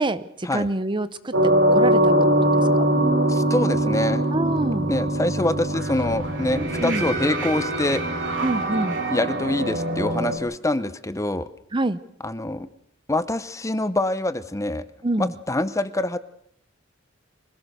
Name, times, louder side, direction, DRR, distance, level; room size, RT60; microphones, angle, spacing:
voice 1, 0.0-1.3 1.7-2.1 2.7-2.9 4.3-4.9 6.8-7.0 8.4-9.0 11.7-12.0 15.0-15.3, right 2 dB, 25° right, 14 dB, 0.7 m, -25 dB
sound 1, 1.3-10.4, right 1 dB, 65° right, 3.9 m, -22 dB
voice 2, 3.3-4.2 4.9-8.3 9.1-11.5 12.2-12.7 13.1-14.8 15.2-16.2, left 1 dB, 15° left, 13 dB, 0.8 m, -25 dB
25.0 x 17.5 x 6.7 m, 0.68 s
head